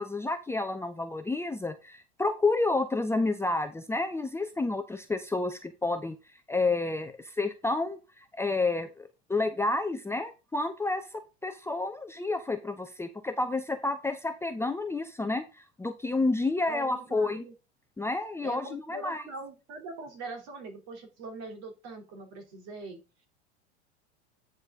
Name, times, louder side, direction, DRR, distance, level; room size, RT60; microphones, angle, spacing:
voice 1, 0.0-6.2 6.5-17.4 18.0-19.2, left 3 dB, 5° left, 7 dB, 0.7 m, -30 dB
voice 2, 16.7-17.5 18.4-23.0, right 3 dB, 50° right, 4 dB, 3.0 m, -42 dB
9.7 x 5.3 x 3.6 m, 0.29 s
figure-of-eight pair, 80°, 34 cm